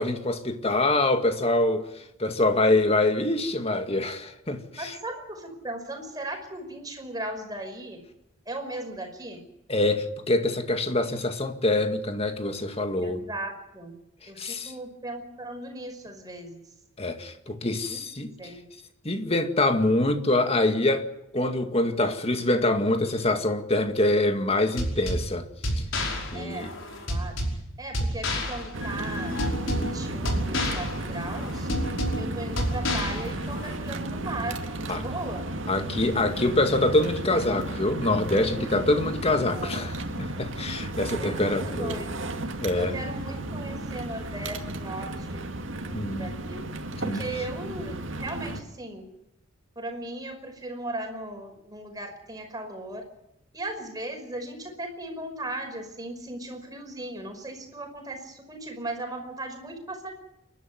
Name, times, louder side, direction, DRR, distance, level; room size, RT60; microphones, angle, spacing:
voice 1, 0.0-1.9 2.2-5.0 9.7-13.2 14.4-14.7 17.0-18.3 19.0-21.0 21.3-25.5 26.3-26.7 34.9-35.0 35.7-42.0 42.6-43.0 45.9-46.3 47.0-47.2, left 2 dB, 30° left, 2.1 m, -25 dB
voice 2, 4.8-8.0 8.5-9.4 13.0-13.9 14.3-16.7 17.9-18.0 18.4-18.7 26.3-26.8 27.1-27.4 27.8-31.7 32.2-34.6 34.9-35.4 39.5-39.9 41.0-42.3 42.7-45.5 45.8-46.6 47.0-49.1 49.8-53.1 53.5-60.1, right 1 dB, 20° right, 5.4 m, -37 dB
sound 1, 24.8-33.8, equal, 70° left, 5.4 m, -30 dB
sound 2, 28.7-48.6, right 1 dB, 65° right, 2.3 m, -34 dB
29.0 x 12.0 x 9.5 m
head